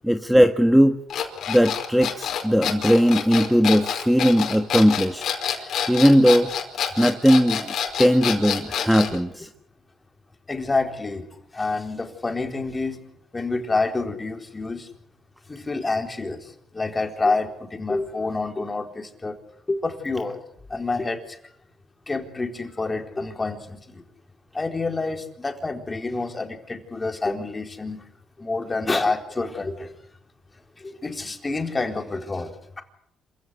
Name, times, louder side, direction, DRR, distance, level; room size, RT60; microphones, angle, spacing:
voice 1, 0.0-1.0 1.5-5.2 5.6-6.5 7.0-9.5, equal, ahead, 7 dB, 1.4 m, -18 dB
sound 1, 1.1-9.2, left 8 dB, 70° left, 4.9 m, -27 dB
voice 2, 10.5-11.3 11.5-13.0 13.3-14.9 15.5-19.4 19.7-20.4 20.7-21.4 22.1-24.0 24.5-28.0 28.4-29.9 30.8-32.8, left 3 dB, 25° left, 5 dB, 4.2 m, -28 dB
27.5 x 16.0 x 10.0 m, 0.71 s
cardioid pair, 90°, 0 cm